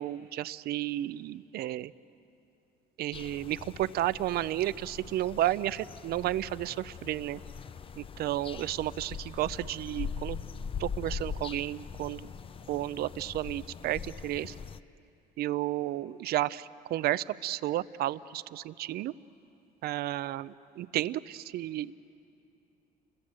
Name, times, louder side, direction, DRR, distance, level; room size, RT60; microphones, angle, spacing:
voice 1, 0.0-1.9 3.0-7.4 8.0-10.4 10.8-12.3 12.7-14.5 15.4-19.1 19.8-21.9, right 14 dB, 70° right, 17 dB, 0.6 m, -32 dB
sound 1, 3.1-14.8, left 6 dB, 30° left, 0.5 m, -42 dB
29.0 x 22.5 x 7.5 m, 2.7 s
cardioid pair, 110°, 17 cm